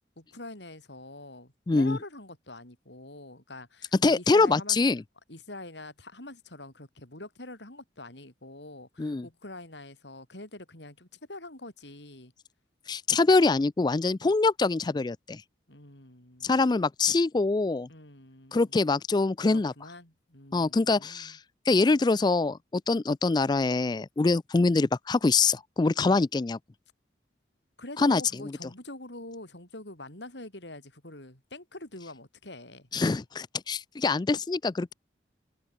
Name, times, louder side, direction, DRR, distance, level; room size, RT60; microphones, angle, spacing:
voice 1, 0.2-4.9 5.3-12.3 14.2-14.3 15.7-16.6 17.9-18.8 19.5-21.4 26.0-26.2 27.8-32.9, left 2 dB, 80° left, 7.6 m, -45 dB
voice 2, 1.7-2.0 4.0-5.0 9.0-9.3 12.9-15.4 16.4-17.9 18.5-19.7 20.5-21.4 21.7-26.6 28.0-28.2 32.9-34.9, left 3 dB, 25° left, 0.3 m, -24 dB
head